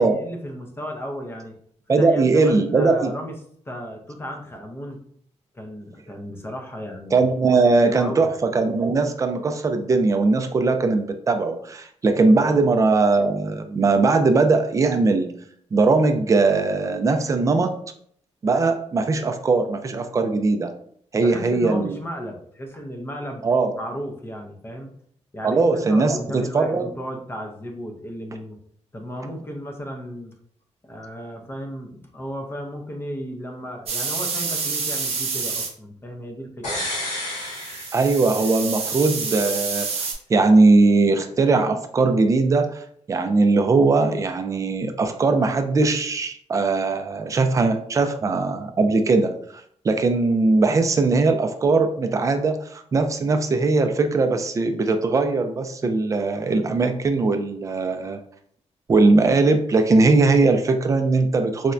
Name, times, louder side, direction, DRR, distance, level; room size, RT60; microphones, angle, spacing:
voice 1, 0.0-1.5 1.9-3.4 3.7-5.0 5.5-8.3 12.4-12.6 21.2-23.4 23.7-24.9 25.3-28.6 28.9-30.3 30.8-36.8, equal, 20° left, 3 dB, 0.5 m, -34 dB
voice 2, 1.9-3.2 7.1-15.3 15.7-17.7 18.4-20.7 21.1-22.0 23.4-23.7 25.4-26.9 37.9-58.2 58.9-61.7, right 3 dB, 25° right, 7 dB, 0.4 m, -20 dB
sound 1, 33.9-35.7 37.4-40.1, right 4 dB, 55° right, 0.7 m, -28 dB
sound 2, 36.6-38.6 38.9-39.0, left 1 dB, 80° left, 1.4 m, -31 dB
4.2 x 2.1 x 2.5 m, 0.63 s
wide cardioid pair, 140°, 12 cm